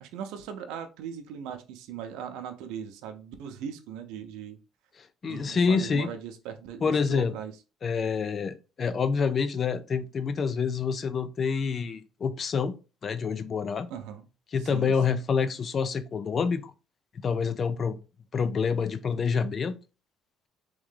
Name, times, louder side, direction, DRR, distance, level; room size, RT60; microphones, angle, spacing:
voice 1, 0.0-4.6 5.2-7.5 13.9-14.2 14.6-15.2, right 8 dB, 85° right, 0.7 m, -39 dB
voice 2, 5.0-6.1 6.8-7.4 7.8-12.8 13.0-13.9 14.5-16.7 17.2-18.0 18.3-19.8, left 5 dB, 35° left, 0.5 m, -27 dB
3.6 x 3.1 x 3.7 m
cardioid pair, 125°, 0 cm